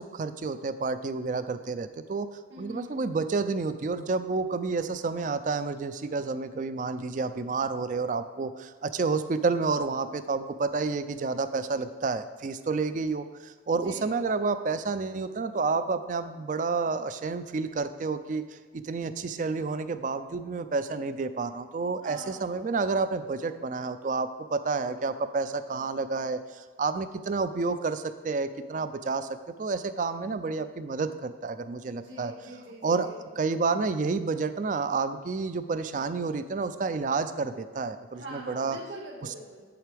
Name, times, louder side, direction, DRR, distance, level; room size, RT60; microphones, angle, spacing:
voice 1, 0.0-2.3 2.6-18.4 18.7-29.3 29.6-32.3 32.8-33.1 33.4-38.8, right 4 dB, 40° right, 12 dB, 0.4 m, -30 dB
voice 2, 2.5-3.2 13.7-14.2 22.0-22.5 31.9-33.2 38.1-39.7, right 1 dB, 80° right, -2 dB, 1.8 m, -43 dB
8.2 x 7.7 x 3.4 m, 1.5 s
head